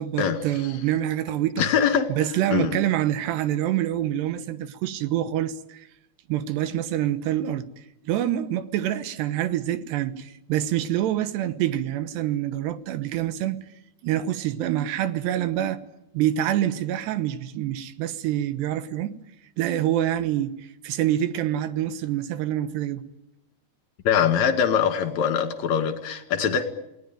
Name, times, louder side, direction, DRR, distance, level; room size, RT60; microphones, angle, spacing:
voice 1, 0.0-1.7 2.1-5.9 6.3-7.7 8.0-13.6 14.0-15.8 16.1-19.2 19.6-23.0, right 12 dB, 80° right, 3.3 m, -26 dB
voice 2, 1.6-2.1 2.5-2.8 24.0-26.7, left 8 dB, 50° left, 3.0 m, -22 dB
28.5 x 19.0 x 9.2 m
omnidirectional pair, 4.8 m